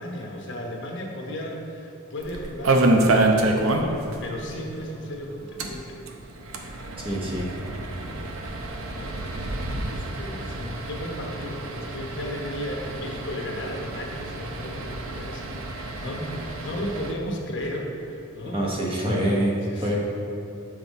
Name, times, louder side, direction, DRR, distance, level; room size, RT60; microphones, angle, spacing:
voice 1, 0.0-3.2 4.2-6.0 8.9-18.6 19.6-20.0, equal, 60° left, -1 dB, 1.0 m, -35 dB
sound 1, 2.2-4.2 4.4-4.5 4.8-4.9 5.4-17.1, right 2 dB, 80° right, 0.7 m, -27 dB
voice 2, 7.0-7.5 18.5-20.0, right 1 dB, 25° right, -3 dB, 1.0 m, -25 dB
6.9 x 6.0 x 4.1 m, 2.7 s
head